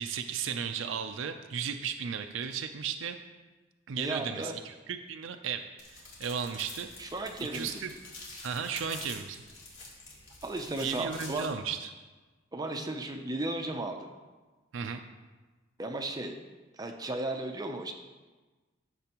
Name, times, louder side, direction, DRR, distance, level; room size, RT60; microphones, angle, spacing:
voice 1, 0.0-3.2 3.9-6.9 7.5-7.9 8.4-9.4 10.8-11.9 14.7-15.0, right 7 dB, 70° right, 7 dB, 0.4 m, -35 dB
voice 2, 4.0-4.5 7.0-7.9 10.4-11.5 12.5-14.1 15.8-16.4 16.7-17.9, right 2 dB, 20° right, 4 dB, 0.5 m, -35 dB
sound 1, 5.8-11.5, left 3 dB, 70° left, 2.4 m, -47 dB
11.5 x 6.8 x 3.0 m, 1.3 s
head